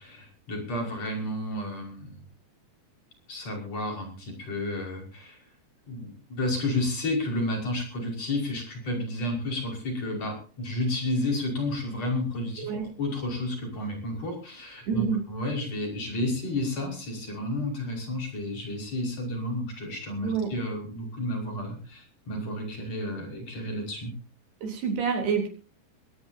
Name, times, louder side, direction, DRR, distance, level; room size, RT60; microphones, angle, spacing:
voice 1, 0.0-2.2 3.3-5.4 5.9-12.7 13.0-24.1, left 1 dB, 40° left, 2 dB, 6.5 m, -31 dB
voice 2, 14.9-15.2 20.2-20.5 24.6-25.5, right 6 dB, 85° right, 2 dB, 5.8 m, -27 dB
21.5 x 18.5 x 2.8 m, 0.38 s
omnidirectional pair, 4.4 m